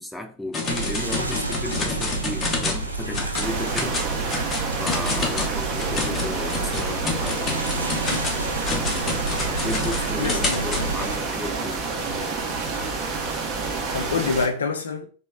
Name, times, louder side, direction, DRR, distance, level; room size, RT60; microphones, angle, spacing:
voice 1, 0.0-4.2 4.8-8.2 9.4-11.9, left 1 dB, ahead, 0.4 m, -34 dB
sound 1, 0.5-2.9 3.1-3.5 3.7-10.8, left 3 dB, 20° left, 0.8 m, -29 dB
sound 2, 0.6-11.2, right 2 dB, 85° right, 0.5 m, -30 dB
sound 3, 3.4-14.5, right 4 dB, 35° right, 0.7 m, -29 dB
voice 2, 9.5-9.9 10.2-10.9 13.9-15.0, left 4 dB, 70° left, 0.5 m, -27 dB
3.0 x 2.2 x 3.4 m
figure-of-eight pair, 90°, 0 cm